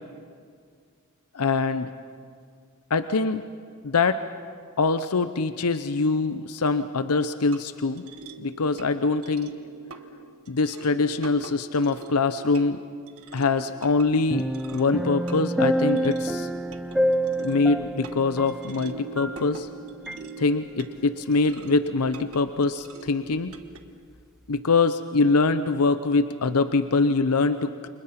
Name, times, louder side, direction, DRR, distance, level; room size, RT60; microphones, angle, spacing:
voice 1, 1.3-1.9 2.9-3.4 3.8-4.2 4.8-8.0 8.4-9.6 10.5-12.8 13.3-14.5 14.7-16.5 17.4-19.7 20.4-23.5 24.5-27.9, left 3 dB, 90° left, 11 dB, 0.7 m, -24 dB
sound 1, 7.1-23.8, right 4 dB, 75° right, 1.4 m, -45 dB
sound 2, 14.3-19.7 20.1-20.2, equal, ahead, 0.5 m, -27 dB
29.0 x 25.5 x 5.9 m, 2.1 s
head